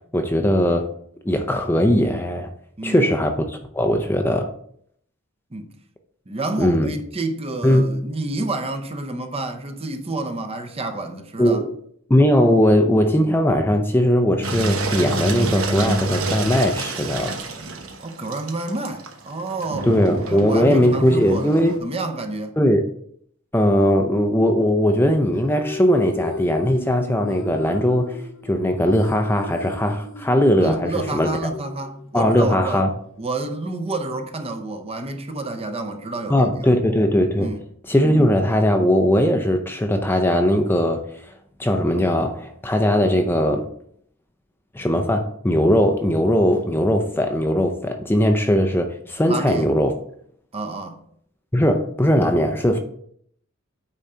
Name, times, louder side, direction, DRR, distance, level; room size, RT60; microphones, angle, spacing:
voice 1, 0.1-0.9 1.2-2.5 2.8-4.5 6.6-6.9 7.6-7.9 11.4-11.7 12.1-17.4 19.8-21.8 22.6-22.9 23.5-31.3 32.1-32.9 36.3-37.5 37.9-41.3 41.6-43.7 44.7-49.9 51.5-52.8, equal, 10° left, 0.5 m, -19 dB
voice 2, 2.8-3.2 5.5-5.7 6.3-11.6 18.0-19.9 20.3-22.6 30.6-32.9 33.2-36.5 37.4-37.7 49.3-49.7 50.5-51.0, right 2 dB, 30° right, 0.7 m, -29 dB
Engine, 14.4-21.8, right 2 dB, 70° right, 1.1 m, -28 dB
sound 1, 25.3-32.4, left 3 dB, 60° left, 0.7 m, -35 dB
8.9 x 3.8 x 4.4 m
head